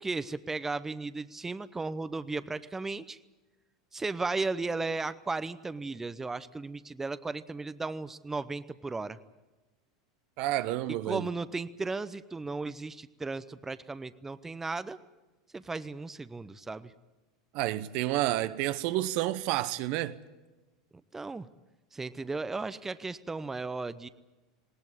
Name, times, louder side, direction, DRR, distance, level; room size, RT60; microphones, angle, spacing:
voice 1, 0.0-3.2 3.9-9.2 11.1-15.0 15.5-16.9 21.1-21.5 21.9-24.1, right 3 dB, 15° right, 0.8 m, -35 dB
voice 2, 10.4-11.3 17.5-20.2, right 15 dB, 55° right, 0.9 m, -30 dB
19.5 x 19.0 x 9.7 m
figure-of-eight pair, 80°, 3 cm